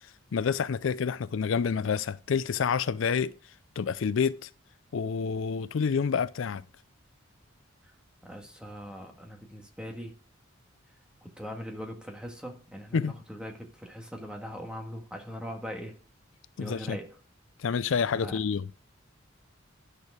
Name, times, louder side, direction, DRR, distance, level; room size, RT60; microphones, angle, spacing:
voice 1, 0.3-3.3 3.8-4.5 4.9-6.6 12.9-13.1 16.6-17.0 17.6-18.6, left 6 dB, 70° left, 0.4 m, -28 dB
voice 2, 8.2-10.2 11.2-16.0 16.6-17.2 18.2-18.4, equal, 5° right, 1.8 m, -41 dB
10.0 x 6.7 x 4.8 m
head